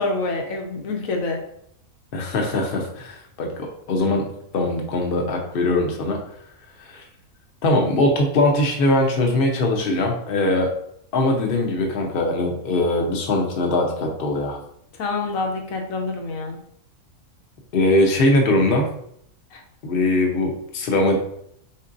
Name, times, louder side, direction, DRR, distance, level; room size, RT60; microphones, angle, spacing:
voice 1, 0.0-1.4 15.0-16.6 19.5-19.6, left 3 dB, 75° left, 2 dB, 1.2 m, -26 dB
voice 2, 2.1-4.2 4.5-6.2 6.8-7.0 7.6-10.7 11.1-14.6 17.7-18.9 19.8-21.2, left 2 dB, 45° left, 1 dB, 0.9 m, -21 dB
4.5 x 4.2 x 2.6 m, 0.70 s
omnidirectional pair, 1.5 m